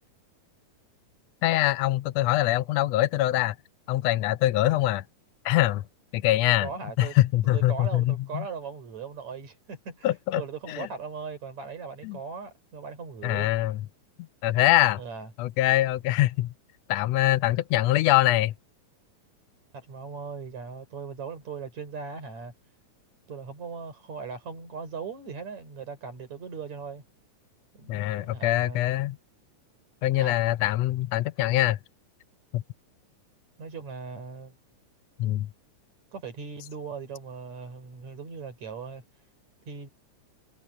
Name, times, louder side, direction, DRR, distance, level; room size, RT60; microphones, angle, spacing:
voice 1, 1.4-3.5 3.9-5.0 5.4-5.8 6.1-6.7 7.0-8.4 10.0-10.4 10.7-10.9 12.0-12.2 13.2-13.8 14.4-15.0 15.4-16.5 16.9-18.5 27.9-29.2 30.0-31.8 32.5-32.6 35.2-35.5, left 15 dB, 80° left, 1.5 m, -23 dB
voice 2, 6.6-7.2 7.4-13.5 15.0-15.3 19.7-22.5 23.3-27.0 27.7-28.8 30.2-30.4 33.6-34.5 36.1-39.0 39.7-39.9, right 5 dB, 65° right, 6.1 m, -39 dB
omnidirectional pair, 3.5 m